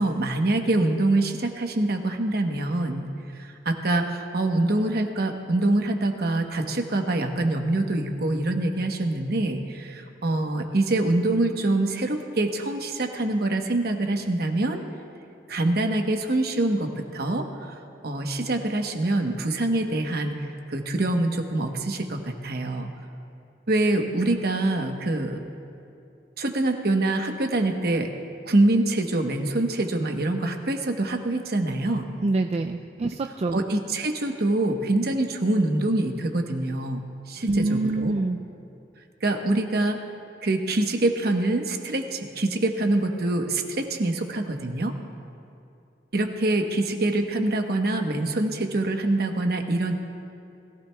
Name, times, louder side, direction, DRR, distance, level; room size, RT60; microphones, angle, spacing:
voice 1, 0.0-3.1 3.4-14.8 15.5-17.4 18.0-22.9 23.7-25.4 26.4-28.1 28.4-32.1 33.5-38.2 39.2-40.0 40.4-44.9 46.1-49.9, right 2 dB, 60° right, 4 dB, 1.0 m, -25 dB
voice 2, 32.2-33.6 37.5-38.4, right 2 dB, 35° right, 5 dB, 0.3 m, -25 dB
21.0 x 14.5 x 2.3 m, 2.6 s
head